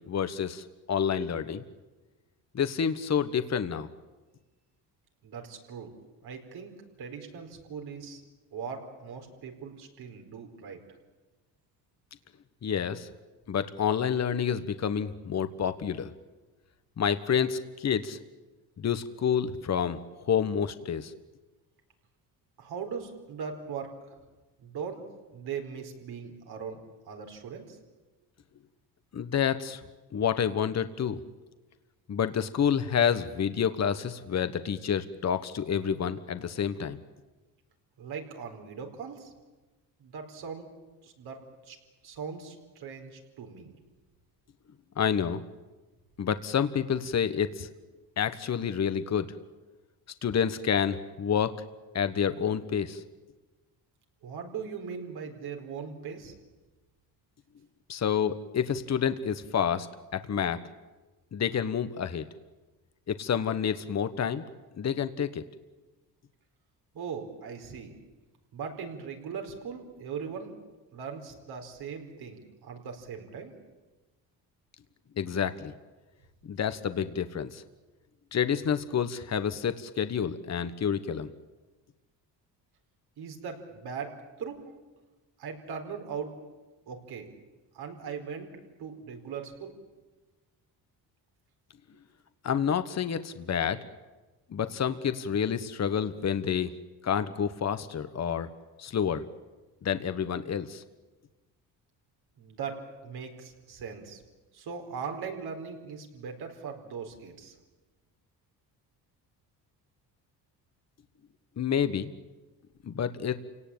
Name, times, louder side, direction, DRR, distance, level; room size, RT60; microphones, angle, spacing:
voice 1, 0.1-1.6 2.5-3.9 12.6-13.1 13.5-16.1 17.0-18.2 18.8-21.1 29.1-29.8 30.1-31.2 32.1-37.0 45.0-45.4 46.2-47.7 48.2-49.3 50.2-51.5 51.9-53.0 57.9-59.9 60.1-60.6 61.3-62.3 63.1-64.4 64.8-65.4 75.2-75.7 76.4-77.6 78.3-81.3 92.4-93.8 94.5-96.7 97.0-98.5 98.8-99.2 99.8-100.8 111.6-112.1 112.8-113.3, left 8 dB, 40° left, 11 dB, 1.3 m, -28 dB
voice 2, 5.2-5.9 6.2-8.2 8.5-10.8 22.6-24.1 24.6-25.0 25.3-26.8 27.1-27.8 38.0-39.3 40.0-40.7 41.0-41.8 42.0-43.7 54.2-56.3 66.9-68.0 68.5-70.6 70.9-73.5 83.2-84.8 85.4-86.3 86.9-87.3 87.7-88.5 88.8-89.8 102.4-104.2 104.5-107.5, right 6 dB, 70° right, 3 dB, 4.7 m, -39 dB
28.0 x 18.0 x 8.7 m, 1.2 s
cardioid pair, 85°, 39 cm